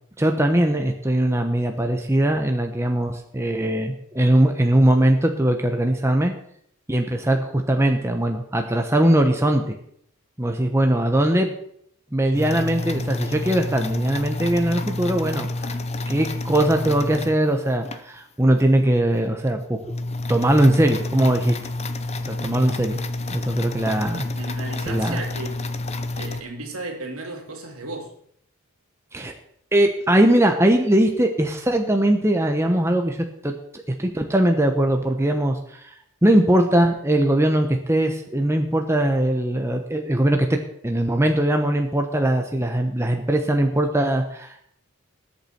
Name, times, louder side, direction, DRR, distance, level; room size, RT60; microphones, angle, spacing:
voice 1, 0.2-6.3 6.9-9.7 10.4-11.5 12.1-15.8 16.1-19.9 20.3-21.6 22.3-23.0 23.3-24.2 24.9-25.2 29.1-29.3 29.7-35.9 36.2-40.6 40.8-44.6, right 1 dB, 10° right, 1.0 m, -20 dB
sound 1, 12.3-18.0 18.6-18.7 19.1-19.2 19.5-26.4, left 2 dB, 30° left, 0.8 m, -29 dB
voice 2, 24.3-25.6 26.2-28.1, right 2 dB, 70° right, 3.1 m, -34 dB
20.0 x 8.5 x 4.5 m
head